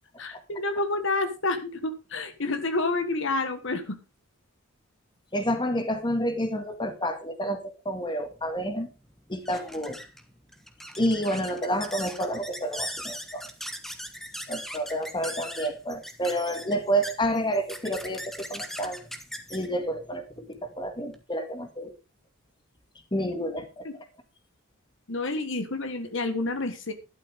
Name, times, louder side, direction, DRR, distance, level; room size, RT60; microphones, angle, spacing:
voice 1, 0.2-4.0 23.8-23.9 25.1-26.9, left 2 dB, 60° left, 8 dB, 1.5 m, -29 dB
voice 2, 5.3-8.9 9.3-10.0 11.0-13.5 14.5-19.0 19.5-21.9 23.1-23.9, equal, 20° left, 7 dB, 1.9 m, -29 dB
sound 1, 8.3-21.2, equal, ahead, 1.3 m, -40 dB
12.5 x 12.0 x 3.5 m, 0.30 s
head